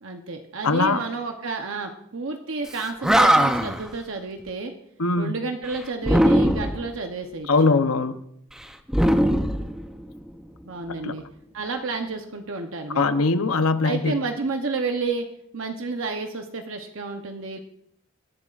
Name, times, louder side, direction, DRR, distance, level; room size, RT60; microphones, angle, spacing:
voice 1, 0.0-4.7 5.2-7.5 10.6-11.2 11.5-13.2 13.8-15.3 15.5-17.6, right 3 dB, 65° right, 4 dB, 0.9 m, -30 dB
voice 2, 0.6-1.0 5.0-5.3 7.5-8.2 11.0-11.1 12.9-14.1, left 3 dB, 85° left, 10 dB, 0.8 m, -21 dB
Animal, 2.7-2.8 3.0-3.9 6.0-6.9 8.9-10.2, equal, 5° right, 0.6 m, -20 dB
25.0 x 11.0 x 2.5 m, 0.73 s
head